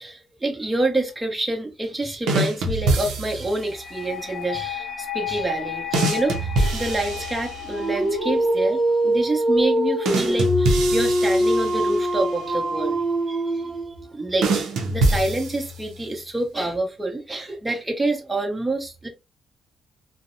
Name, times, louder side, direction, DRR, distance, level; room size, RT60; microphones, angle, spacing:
voice 1, 0.0-13.0 13.3-19.1, right 2 dB, 20° right, 0.8 m, -27 dB
sound 1, 2.3-3.7 5.9-7.9 10.0-12.2 14.4-16.0, right 2 dB, 85° right, 0.5 m, -24 dB
sound 2, 3.5-8.6, left 10 dB, 45° left, 0.4 m, -33 dB
Dog, 7.7-14.1, right 1 dB, 50° right, 0.8 m, -23 dB
2.6 x 2.0 x 2.5 m
cardioid pair, 90°, 0 cm